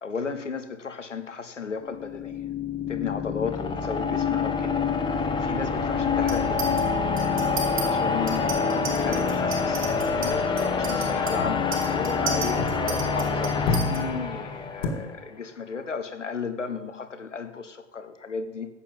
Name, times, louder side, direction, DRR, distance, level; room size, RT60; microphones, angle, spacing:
voice 1, 0.0-2.4 2.9-6.8 7.8-9.9 10.2-18.7, left 5 dB, 90° left, 1.1 m, -34 dB
sound 1, 1.9-15.0, left 5 dB, 15° left, 1.1 m, -26 dB
sound 2, 4.8-8.5 8.7-9.1 9.4-13.2 13.5-14.9, left 4 dB, 50° left, 2.0 m, -35 dB
Chink clink, 6.3-6.8 7.2-7.9 8.3-14.0, right 7 dB, 35° right, 4.7 m, -35 dB
12.5 x 8.5 x 5.3 m
figure-of-eight pair, 95°, 36 cm